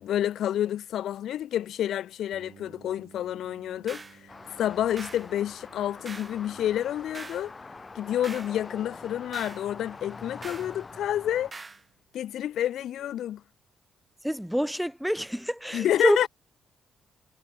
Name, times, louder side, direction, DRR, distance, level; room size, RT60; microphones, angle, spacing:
voice 1, 0.0-4.3 4.6-7.5 8.0-11.5 12.1-13.4 15.7-16.3, left 11 dB, 75° left, 0.4 m, -29 dB
sound 1, 2.3-12.0, right 8 dB, 60° right, 5.6 m, -59 dB
sound 2, 3.9-4.2 5.0-5.3 6.0-6.4 7.1-7.5 8.2-8.6 9.3-9.6 10.4-10.7 11.5-11.8, right 3 dB, 25° right, 0.8 m, -42 dB
sound 3, 4.3-11.5, left 3 dB, 25° left, 2.2 m, -45 dB
voice 2, 14.2-16.3, equal, ahead, 0.4 m, -27 dB
cardioid pair, 90°, 0 cm